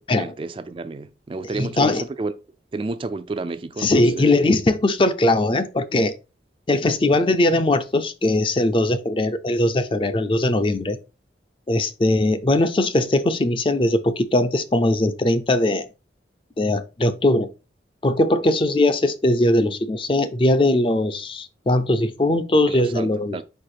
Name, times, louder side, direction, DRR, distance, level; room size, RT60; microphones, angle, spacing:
voice 1, 0.1-2.3 2.7-4.4 22.7-23.4, right 3 dB, 30° right, 0.3 m, -31 dB
voice 2, 1.5-2.0 3.8-6.2 6.7-11.0 11.7-15.9 16.6-17.5 18.0-23.4, left 1 dB, 30° left, 0.5 m, -20 dB
4.6 x 4.4 x 4.9 m
head